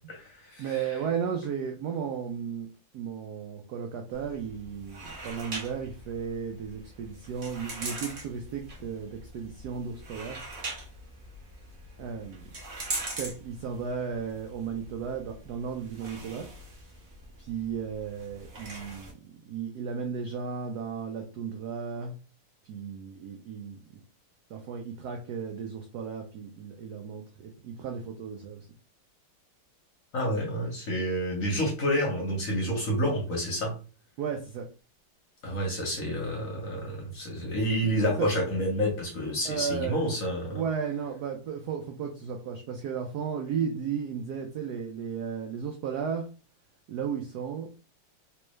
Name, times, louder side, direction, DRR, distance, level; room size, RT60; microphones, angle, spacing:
voice 1, 0.1-1.0 30.1-33.7 35.4-40.6, equal, 50° left, 0 dB, 1.1 m, -29 dB
voice 2, 0.6-2.7 2.9-10.4 12.0-12.5 12.9-16.5 17.4-22.1 22.6-23.8 24.5-28.7 34.2-34.7 38.2-38.3 39.4-40.1 40.5-46.3 46.9-47.7, right 7 dB, 85° right, 3 dB, 0.8 m, -34 dB
sound 1, 4.1-19.1, right 2 dB, 45° right, 1.0 m, -42 dB
3.3 x 3.1 x 3.1 m, 0.35 s
omnidirectional pair, 2.4 m